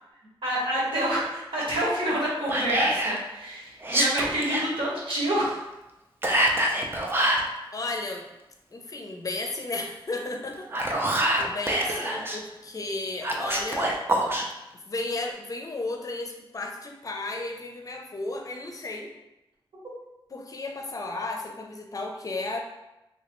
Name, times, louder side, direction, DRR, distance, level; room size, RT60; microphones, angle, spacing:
voice 1, 0.4-5.6 6.3-6.4 11.2-11.5 11.9-12.0, right 1 dB, 75° right, -6 dB, 1.4 m, -28 dB
Whispering, 2.5-3.2 3.8-4.7 6.2-7.5 10.5-12.4 13.2-14.4, right 1 dB, 25° right, 0.4 m, -25 dB
voice 2, 7.7-8.3 8.7-10.7 11.4-13.9 14.9-19.1 20.3-22.6, left 2 dB, 40° left, 2 dB, 0.5 m, -34 dB
3.1 x 3.1 x 3.0 m, 0.96 s
wide cardioid pair, 125°, 9 cm